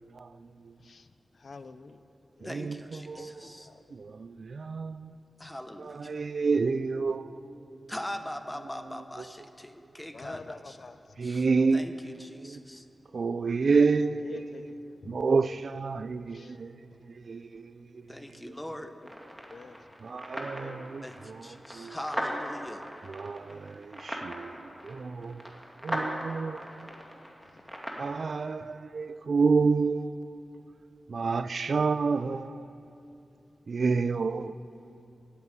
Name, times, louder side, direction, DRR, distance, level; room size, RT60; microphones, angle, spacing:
voice 1, 0.1-0.8 2.4-3.5 3.9-5.1 5.8-7.9 11.2-12.6 13.1-14.7 15.1-18.1 20.0-22.0 23.0-25.5 25.8-26.9 28.0-30.4 31.1-32.7 33.7-34.6, right 4 dB, 70° right, 0.4 m, -30 dB
voice 2, 0.8-2.1 2.4-2.7 3.1-3.8 5.4-5.6 10.1-11.2 14.2-15.3 16.3-16.6 16.9-17.0 18.7-19.2 19.5-19.9 20.5-20.9 26.8-27.2 27.5-27.6 28.4-28.7, left 4 dB, 65° left, 0.6 m, -48 dB
voice 3, 2.4-3.7 5.4-6.1 7.9-10.8 11.2-11.5 11.7-12.8 18.1-18.9 21.0-22.9, left 1 dB, 10° left, 1.0 m, -41 dB
sound 1, 19.0-28.1, equal, 5° right, 2.3 m, -39 dB
14.0 x 8.1 x 9.5 m
cardioid pair, 65°, 0 cm